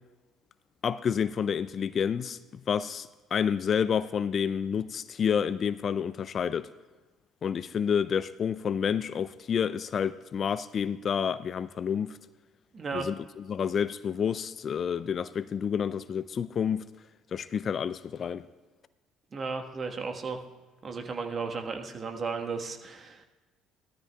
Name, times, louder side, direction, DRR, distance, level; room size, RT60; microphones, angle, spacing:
voice 1, 0.8-2.4 2.7-6.7 7.4-12.2 12.9-16.8 17.3-18.5, left 7 dB, 45° left, 0.3 m, -29 dB
voice 2, 12.7-13.1 19.3-20.4 20.8-23.2, right 4 dB, 40° right, 1.3 m, -34 dB
17.0 x 13.0 x 2.3 m
hypercardioid pair, 60°, 0 cm